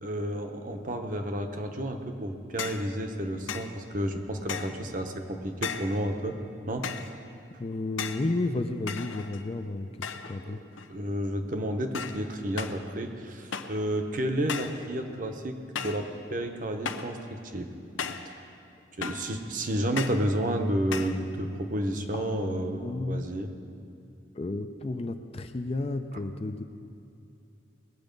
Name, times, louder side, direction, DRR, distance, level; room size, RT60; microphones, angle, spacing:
voice 1, 0.0-6.3 6.7-6.9 10.4-10.5 10.9-17.7 18.2-18.4 19.0-23.5, right 1 dB, 45° right, 5 dB, 0.9 m, -31 dB
sound 1, 2.6-2.9 3.5-3.8 4.5-4.8 5.6-6.0 6.8-7.2 8.0-8.3 8.9-9.5 10.0-10.4 10.7-11.2 11.9-12.2 12.6-12.8 13.5-13.8 14.5-14.8 15.7-16.1 16.8-17.2 18.0-18.3 19.0-19.3 20.0-20.3 20.9-21.2, left 6 dB, 90° left, 0.7 m, -36 dB
voice 2, 7.6-10.6 22.1-23.3 24.3-26.6, left 2 dB, 30° left, 8 dB, 0.4 m, -32 dB
19.5 x 8.1 x 5.3 m, 2.6 s
head